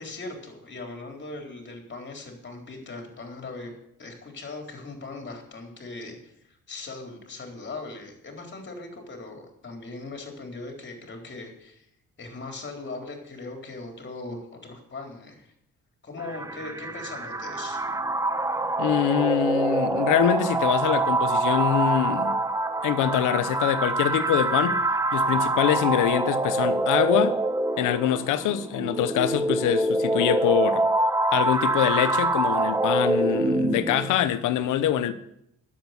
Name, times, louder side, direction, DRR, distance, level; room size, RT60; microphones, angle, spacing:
voice 1, 0.0-11.9 12.2-15.5 16.0-17.8, left 3 dB, 40° left, 3.9 m, -39 dB
sound 1, 16.2-34.1, right 2 dB, 10° right, 0.7 m, -25 dB
voice 2, 18.8-22.4 22.8-24.8 25.1-27.4 27.8-30.8 31.3-35.1, left 11 dB, 90° left, 1.0 m, -24 dB
10.5 x 7.8 x 8.2 m
cardioid pair, 90°, 30 cm